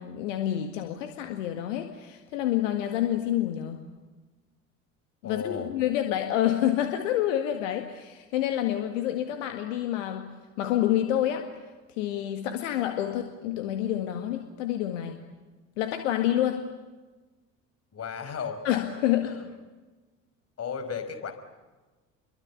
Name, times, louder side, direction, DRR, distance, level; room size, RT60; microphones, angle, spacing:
voice 1, 0.0-3.8 5.2-10.3 10.6-11.5 12.0-15.2 15.8-16.7 18.6-19.4, left 12 dB, 70° left, 6 dB, 2.0 m, -28 dB
voice 2, 5.2-5.7 17.9-18.7 19.2-19.5 20.6-21.3, left 6 dB, 40° left, 7 dB, 5.2 m, -35 dB
30.0 x 23.5 x 8.5 m, 1.2 s
figure-of-eight pair, 60°, 40 cm